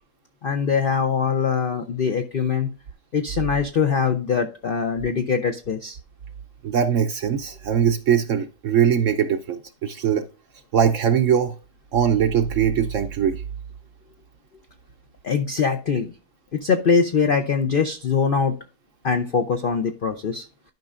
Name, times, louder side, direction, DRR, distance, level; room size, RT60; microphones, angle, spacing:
voice 1, 0.4-2.7 3.1-6.0 15.2-16.1 16.5-18.5 19.0-20.5, left 6 dB, 75° left, 6 dB, 0.4 m, -22 dB
voice 2, 6.6-10.2 10.7-11.5 11.9-13.4, right 8 dB, 65° right, 8 dB, 0.8 m, -21 dB
12.0 x 5.3 x 2.4 m, 0.33 s
omnidirectional pair, 1.8 m